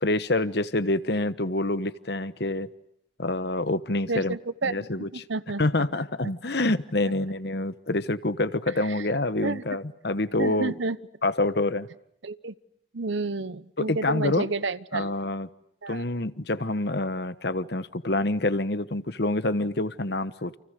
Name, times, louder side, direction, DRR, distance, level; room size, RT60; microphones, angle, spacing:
voice 1, 0.0-2.7 3.2-4.4 4.6-5.2 5.6-10.7 11.2-11.9 13.8-14.5 14.9-15.5 15.9-20.6, left 2 dB, 55° left, 14 dB, 1.2 m, -27 dB
voice 2, 4.1-4.9 5.1-5.6 9.0-9.1 9.4-9.6 10.4-11.0 12.2-12.5 12.9-15.2 15.8-16.0, right 3 dB, 70° right, 16 dB, 1.0 m, -30 dB
29.5 x 28.5 x 6.6 m, 0.75 s
head